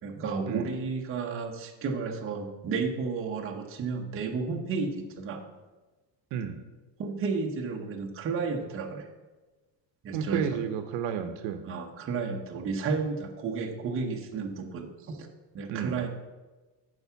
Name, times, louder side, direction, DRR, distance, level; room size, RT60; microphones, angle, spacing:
voice 1, 0.0-5.4 7.0-9.1 10.0-10.6 11.6-15.3 15.5-16.1, right 4 dB, 25° right, 1 dB, 0.9 m, -32 dB
voice 2, 10.1-11.6 15.7-16.0, right 8 dB, 60° right, 8 dB, 0.9 m, -31 dB
8.8 x 4.9 x 6.9 m, 1.2 s
cardioid pair, 175°, 48 cm